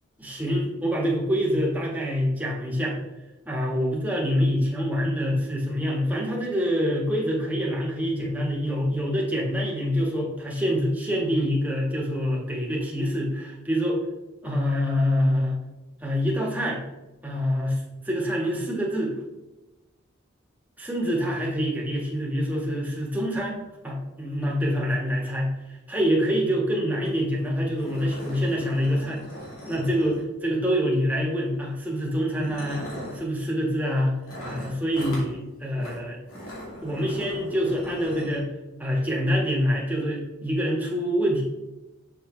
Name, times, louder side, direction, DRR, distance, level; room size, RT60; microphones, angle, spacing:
voice 1, 0.2-3.0 3.5-14.0 14.4-15.6 16.0-16.8 17.2-19.1 20.8-23.6 23.8-25.5 25.9-29.2 29.7-34.2 34.4-36.2 36.8-38.5 38.8-41.4, equal, 10° right, -3 dB, 1.7 m, -26 dB
sound 1, 27.0-27.1 27.4-27.5 27.8-30.5 31.5-31.7 32.3-33.2 34.3-35.3 35.8-36.0 36.3-38.4, equal, 85° left, 2.8 m, -40 dB
7.4 x 6.6 x 3.3 m, 1.1 s
head